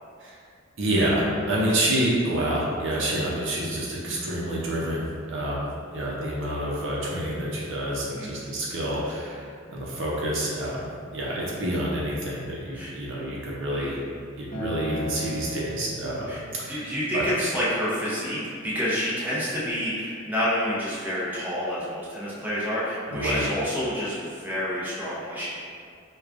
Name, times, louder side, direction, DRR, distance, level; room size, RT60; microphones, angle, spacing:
voice 1, 0.8-14.0 14.4-16.3 16.6-17.2 23.1-23.5, right 1 dB, 65° right, -5 dB, 0.6 m, -28 dB
Acoustic guitar, 14.5-19.7, left 1 dB, 35° left, 0.9 m, -40 dB
voice 2, 16.7-25.5, equal, 10° right, -9 dB, 0.7 m, -28 dB
4.6 x 2.3 x 2.5 m, 2.3 s
head